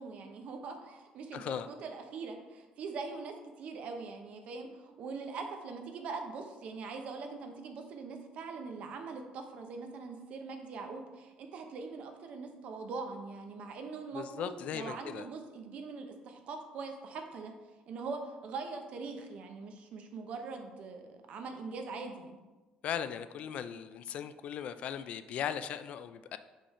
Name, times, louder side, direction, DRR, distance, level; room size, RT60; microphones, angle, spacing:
voice 1, 0.0-17.5 17.9-22.4, right 4 dB, 55° right, 5 dB, 0.8 m, -42 dB
voice 2, 1.3-1.7 14.1-15.3 22.8-26.4, left 9 dB, 55° left, 11 dB, 0.3 m, -38 dB
5.2 x 5.0 x 4.2 m, 1.2 s
cardioid pair, 145°, 3 cm